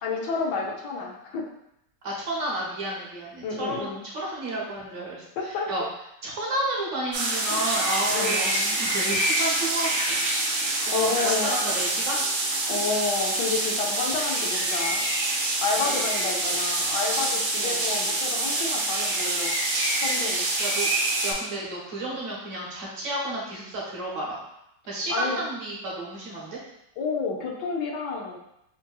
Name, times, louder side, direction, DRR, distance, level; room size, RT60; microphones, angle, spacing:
voice 1, 0.0-1.4 3.4-4.0 5.4-5.7 8.1-8.7 10.9-11.7 12.7-15.0 15.6-19.5 20.0-20.5 25.1-25.4 27.0-28.4, left 4 dB, 80° left, -1 dB, 1.2 m, -30 dB
voice 2, 2.0-5.8 6.2-8.5 8.8-9.9 10.8-12.2 15.8-15.9 17.6-17.8 20.6-20.9 21.2-24.4 24.9-26.6, right 1 dB, 55° right, -4 dB, 1.0 m, -31 dB
sound 1, 7.1-21.3, right 2 dB, 70° right, 1.3 m, -26 dB
5.3 x 2.6 x 2.3 m, 0.80 s
omnidirectional pair, 1.8 m